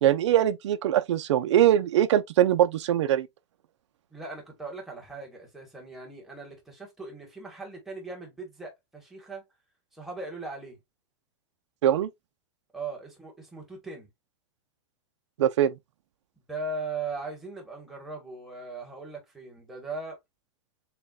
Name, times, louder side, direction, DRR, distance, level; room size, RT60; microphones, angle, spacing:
voice 1, 0.0-3.3 11.8-12.1 15.4-15.7, right 11 dB, 80° right, 0.6 m, -22 dB
voice 2, 4.1-9.4 9.9-10.8 12.7-14.1 16.5-20.2, right 3 dB, ahead, 1.3 m, -39 dB
6.8 x 2.3 x 2.3 m
supercardioid pair, 170°, 15 cm